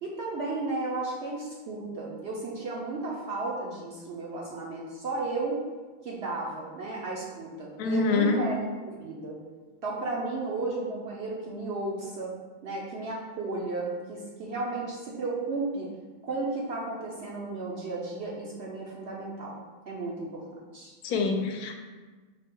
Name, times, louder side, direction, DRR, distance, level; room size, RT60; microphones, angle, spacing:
voice 1, 0.0-5.6 6.0-9.4 9.8-12.3 12.6-15.9 16.2-19.6 19.9-20.4 20.7-20.9, right 3 dB, 60° right, -3 dB, 0.7 m, -34 dB
voice 2, 7.8-8.5 21.0-21.7, left 4 dB, 80° left, 4 dB, 1.1 m, -25 dB
4.6 x 2.2 x 4.4 m, 1.4 s
omnidirectional pair, 1.6 m